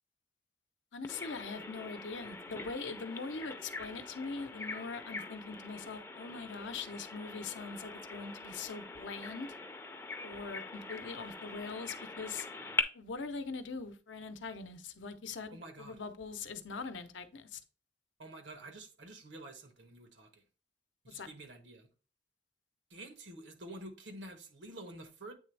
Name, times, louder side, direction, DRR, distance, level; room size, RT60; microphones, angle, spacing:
voice 1, 0.9-9.5 10.2-12.5 12.9-17.6 21.1-21.3, left 4 dB, 85° left, 0.7 m, -42 dB
Bird vocalization bird call bird song, 1.0-12.8, left 3 dB, 15° left, 0.4 m, -42 dB
voice 2, 15.5-16.0 18.2-20.4 21.0-21.9 22.9-25.3, right 1 dB, 80° right, 1.1 m, -49 dB
8.4 x 3.4 x 3.2 m
head